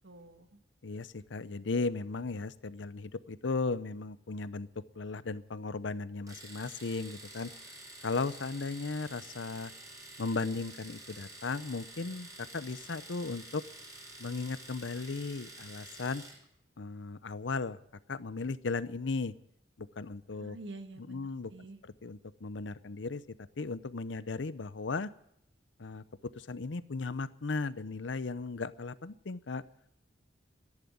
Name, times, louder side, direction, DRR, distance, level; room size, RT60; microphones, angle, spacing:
voice 1, 0.0-0.6 20.3-21.8, right 2 dB, 75° right, 7 dB, 1.6 m, -48 dB
voice 2, 0.8-4.7 4.9-7.5 8.0-9.7 10.2-13.6 14.2-16.2 16.8-17.8 18.1-19.3 19.8-20.6 21.1-21.5 22.0-23.2 23.6-25.1 25.8-26.0 26.3-29.6, left 3 dB, 75° left, 15 dB, 0.7 m, -36 dB
Domestic sounds home sounds, 6.3-16.4, right 1 dB, 20° right, 4.3 m, -49 dB
13.5 x 11.0 x 9.4 m, 0.76 s
head